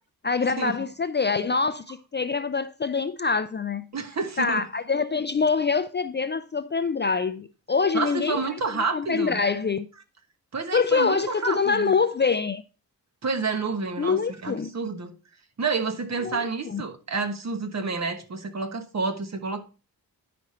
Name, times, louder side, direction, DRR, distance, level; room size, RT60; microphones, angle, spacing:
voice 1, 0.2-3.9 4.4-8.4 8.9-9.9 10.7-12.6 14.0-14.7 16.2-16.4 16.7-16.8, left 5 dB, 30° left, 0.4 m, -25 dB
voice 2, 3.9-4.6 7.9-9.4 10.5-11.9 13.2-15.1 15.6-19.6, right 4 dB, 45° right, 1.2 m, -29 dB
10.0 x 5.1 x 4.2 m
wide cardioid pair, 125°, 37 cm